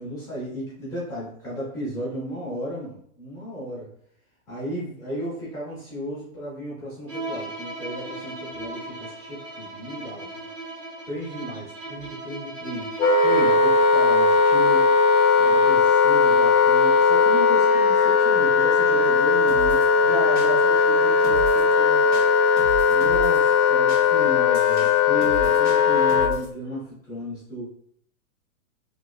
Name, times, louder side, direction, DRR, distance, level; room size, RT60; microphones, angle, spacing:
voice 1, 0.0-3.9 4.5-10.4 11.1-12.9 13.2-14.9 15.4-19.8 22.9-27.7, equal, 5° left, -10 dB, 0.6 m, -34 dB
Bowed string instrument, 7.1-13.7, right 2 dB, 60° right, 1.3 m, -37 dB
Wind instrument woodwind instrument, 13.0-26.4, left 5 dB, 85° left, 0.6 m, -18 dB
sound 1, 19.5-19.9 20.4-20.8 21.2-21.7 22.1-23.4 23.9-26.5, right 1 dB, 85° right, 1.5 m, -36 dB
voice 2, 20.0-22.0, right 2 dB, 35° right, -4 dB, 0.6 m, -34 dB
3.2 x 2.4 x 2.3 m, 0.65 s
hypercardioid pair, 155°, 42 cm